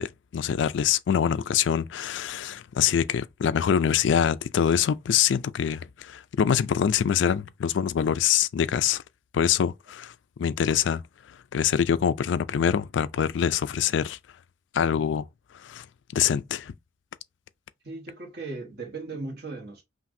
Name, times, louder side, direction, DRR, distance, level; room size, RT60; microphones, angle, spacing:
voice 1, 0.0-9.0 9.3-10.1 10.4-11.0 11.5-14.2 14.7-15.2 15.6-15.9 16.1-16.7, left 8 dB, 70° left, 0.3 m, -24 dB
voice 2, 17.8-19.8, right 3 dB, 60° right, 1.6 m, -37 dB
5.7 x 2.5 x 2.6 m
head